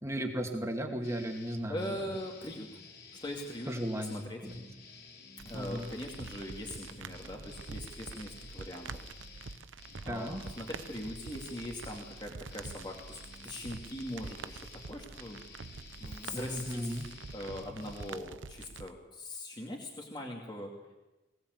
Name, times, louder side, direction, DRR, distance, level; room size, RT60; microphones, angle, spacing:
voice 1, 0.0-2.0 3.7-4.6 5.5-5.9 10.1-10.4 16.3-17.1, equal, 15° right, 2 dB, 2.7 m, -36 dB
sound 1, 1.0-18.2, left 4 dB, 50° left, 3.6 m, -52 dB
voice 2, 1.7-2.8 3.2-3.7 4.0-4.4 5.4-8.9 10.0-15.4 16.0-20.7, left 1 dB, 25° left, 0 dB, 2.6 m, -41 dB
sound 2, 5.4-18.9, right 4 dB, 75° right, 0.8 m, -46 dB
22.5 x 18.5 x 8.1 m, 1.1 s
head